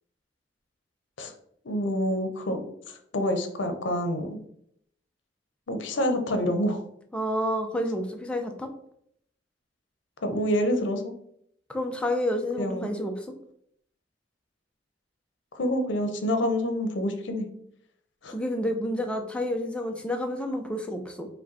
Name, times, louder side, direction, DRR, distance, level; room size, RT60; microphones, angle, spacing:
voice 1, 1.6-2.6 2.9-4.4 5.7-6.8 10.2-11.1 12.6-12.9 15.5-17.5 18.2-18.3, equal, 80° left, 6 dB, 0.7 m, -27 dB
voice 2, 7.1-8.7 11.7-13.4 18.3-21.3, equal, 5° left, 3 dB, 0.5 m, -29 dB
5.0 x 2.2 x 4.0 m, 0.70 s
head